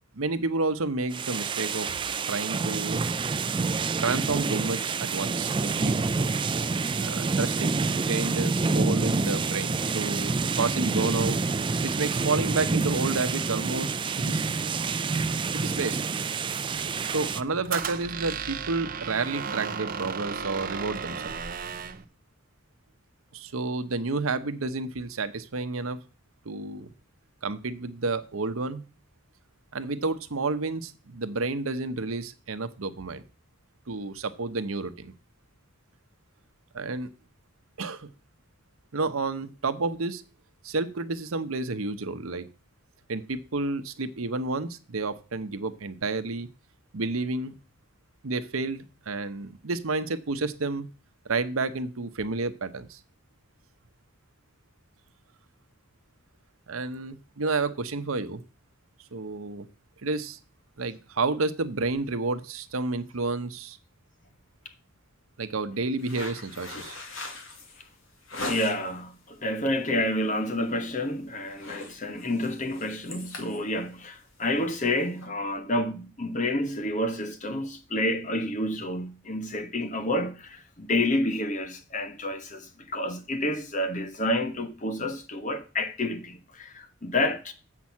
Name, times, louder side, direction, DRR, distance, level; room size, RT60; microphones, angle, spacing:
voice 1, 0.1-3.0 4.0-6.0 6.9-7.8 8.1-11.4 11.8-14.7 15.5-16.0 17.1-21.3 23.3-26.0 26.4-26.9 27.4-28.8 29.7-33.2 33.9-35.1 36.7-37.1 37.8-38.1 38.9-40.2 40.6-42.5 43.1-46.5 46.9-47.5 48.2-50.9 51.2-53.0 56.7-58.4 59.1-59.7 60.0-60.4 60.8-63.8 65.4-67.0, right 3 dB, 85° right, 0.9 m, -30 dB
sound 1, 1.1-17.4, right 4 dB, 25° right, 0.4 m, -27 dB
Squeak, 16.8-22.0, right 6 dB, 40° right, 0.7 m, -35 dB
sound 2, 66.0-69.0 69.4-69.8 70.1-70.4 70.7-71.1 71.3-75.3, left 2 dB, 70° left, 2.2 m, -40 dB
voice 2, 68.4-87.5, left 1 dB, 35° left, 1.2 m, -29 dB
7.5 x 6.1 x 7.2 m
head